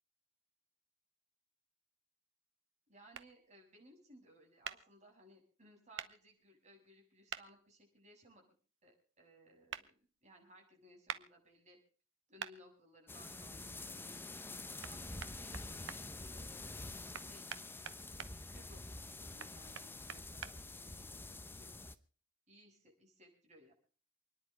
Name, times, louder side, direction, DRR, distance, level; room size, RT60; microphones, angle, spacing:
voice 1, 2.9-8.4 8.8-11.8 12.3-14.4 14.9-16.9 17.1-17.6 18.1-21.9 22.5-23.7, equal, 35° right, 0 dB, 7.3 m, -62 dB
sound 1, 3.1-3.3 4.6-4.8 6.0-6.1 7.3-7.4 9.7-9.8 11.1-11.2 12.4-12.5 14.8-14.9 15.2-16.0 17.1-18.3 19.4-20.5, right 8 dB, 65° right, 1.0 m, -44 dB
sound 2, 13.1-22.0, left 2 dB, 10° left, 0.8 m, -47 dB
28.5 x 10.5 x 3.3 m, 0.40 s
head